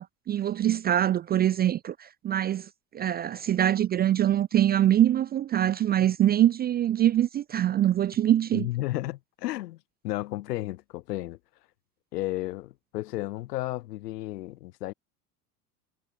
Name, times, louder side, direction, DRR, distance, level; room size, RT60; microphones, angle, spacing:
voice 1, 0.0-2.7 2.9-8.7, right 11 dB, 20° right, 0.4 m, -24 dB
voice 2, 8.5-9.8 10.0-11.4 12.1-14.9, left 17 dB, 75° left, 1.3 m, -33 dB
hypercardioid pair, 80°, 48 cm